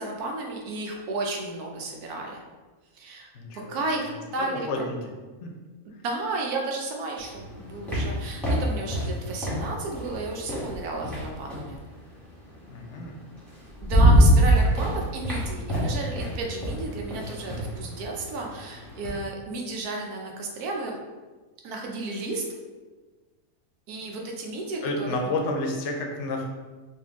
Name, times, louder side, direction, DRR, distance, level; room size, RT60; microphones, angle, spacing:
voice 1, 0.0-2.4 2.9-4.9 6.0-11.8 13.8-20.9 21.6-22.4 23.9-25.3, right 2 dB, 80° right, 1 dB, 1.2 m, -33 dB
voice 2, 3.3-3.8 4.1-5.1 5.4-5.5 12.6-13.2 14.5-14.6 24.8-26.5, left 2 dB, 60° left, 2 dB, 0.8 m, -31 dB
sound 1, 7.2-11.8 13.0-13.1 13.5-19.2, right 1 dB, ahead, 1.1 m, -24 dB
4.2 x 2.6 x 3.5 m, 1.3 s
omnidirectional pair, 1.6 m